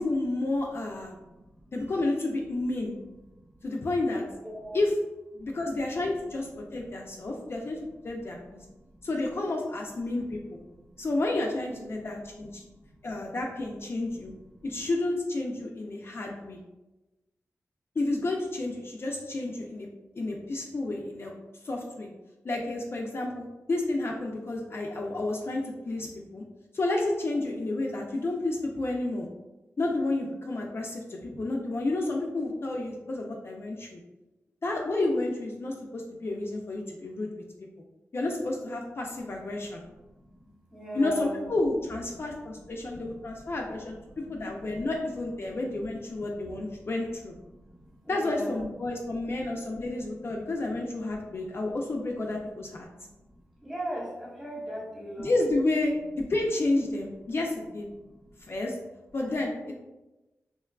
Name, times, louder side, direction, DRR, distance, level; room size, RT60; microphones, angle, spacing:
voice 1, 0.0-1.2 1.7-2.9 3.6-4.2 4.7-4.9 5.4-7.8 8.0-8.7 9.0-10.6 11.0-12.6 13.0-14.3 14.6-16.6 18.0-19.9 20.2-21.3 21.6-22.1 22.4-26.4 26.7-29.3 29.8-34.0 34.6-37.4 38.1-39.8 40.9-47.3 48.1-52.9 55.2-57.9 58.5-58.8 59.1-59.7, left 2 dB, 45° left, 0 dB, 0.4 m, -30 dB
voice 2, 1.1-1.7 3.3-3.5 4.3-4.8 5.5-5.6 7.1-7.4 8.4-8.9 10.7-11.1 11.6-12.1 12.6-13.1 14.4-14.7 39.5-41.5 42.1-42.2 42.5-44.9 45.5-45.8 46.3-47.1 47.6-48.6 50.2-50.4 51.3-51.4 52.9-55.3 58.0-58.5, right 1 dB, 5° right, -4 dB, 1.0 m, -43 dB
2.9 x 2.3 x 2.2 m, 1.0 s
cardioid pair, 55°, 5 cm